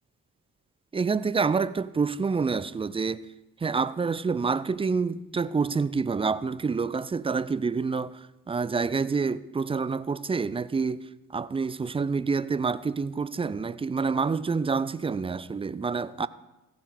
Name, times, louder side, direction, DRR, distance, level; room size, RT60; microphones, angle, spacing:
voice 1, 0.9-3.2 3.6-11.1 11.3-16.3, right 5 dB, 15° right, 0.4 m, -27 dB
14.5 x 6.6 x 5.0 m
hypercardioid pair, 40°, 47 cm